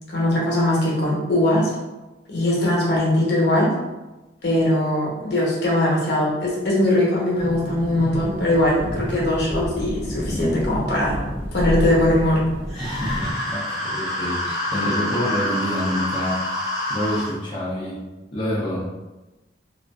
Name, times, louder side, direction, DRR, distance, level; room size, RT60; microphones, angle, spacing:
voice 1, 0.1-1.7 2.3-3.7 4.4-11.2 11.5-12.5, left 1 dB, 65° left, -4 dB, 0.8 m, -20 dB
sound 1, 7.3-13.3, equal, 30° right, 1.0 m, -29 dB
sound 2, 12.7-17.3, left 1 dB, ahead, 1.1 m, -27 dB
voice 2, 12.8-18.0 18.3-18.8, left 1 dB, 25° left, -7 dB, 0.4 m, -27 dB
2.4 x 2.3 x 2.2 m, 1.1 s
head